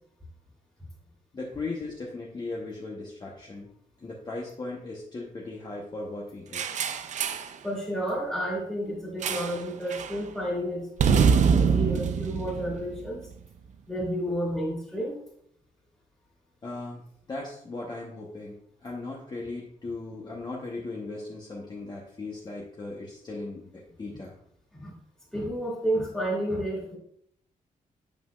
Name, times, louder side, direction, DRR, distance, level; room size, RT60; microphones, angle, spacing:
voice 1, 1.3-3.7 4.0-6.6 16.6-17.0 17.3-18.6 18.8-24.3, left 2 dB, 30° left, -3 dB, 1.0 m, -37 dB
sound 1, 6.5-7.5 9.2-9.6 9.9-10.2 11.0-13.3, right 6 dB, 55° right, 0.5 m, -24 dB
voice 2, 7.6-13.2 13.9-15.1 24.7-24.9 25.3-27.0, equal, 5° left, -5 dB, 2.2 m, -31 dB
8.5 x 5.6 x 2.4 m, 0.69 s
wide cardioid pair, 155°, 15 cm